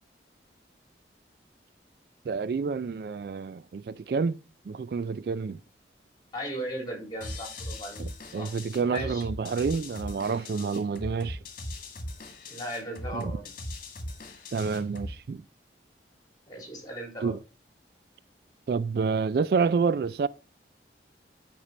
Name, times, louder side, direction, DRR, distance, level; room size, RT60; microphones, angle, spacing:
voice 1, 2.3-4.4 4.7-5.6 8.0-11.4 13.1-13.3 14.5-15.4 17.2-17.4 18.7-20.3, right 5 dB, 55° right, 0.3 m, -28 dB
voice 2, 6.3-8.0 8.4-8.5 8.9-9.3 12.5-13.5 16.5-17.3, equal, 20° left, 3.7 m, -37 dB
sound 1, 7.2-15.2, left 1 dB, 45° left, 1.9 m, -39 dB
10.0 x 5.3 x 4.2 m
head